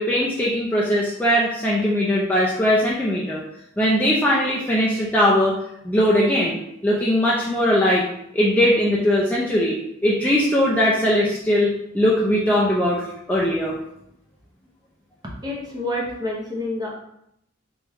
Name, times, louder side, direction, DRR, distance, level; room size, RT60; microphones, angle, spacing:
voice 1, 0.0-3.4 3.8-5.6 5.8-8.1 8.3-13.8, equal, 10° left, -6 dB, 0.4 m, -20 dB
voice 2, 15.4-16.9, left 1 dB, 20° right, -3 dB, 0.8 m, -28 dB
3.3 x 3.1 x 3.5 m, 0.77 s
head